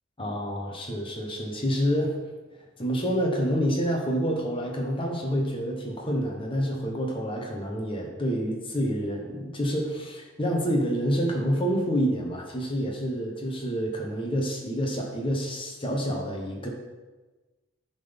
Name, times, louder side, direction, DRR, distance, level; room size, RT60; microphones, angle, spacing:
voice 1, 0.2-2.2 2.8-16.7, equal, 25° left, 0 dB, 1.3 m, -28 dB
9.4 x 4.0 x 5.3 m, 1.2 s
head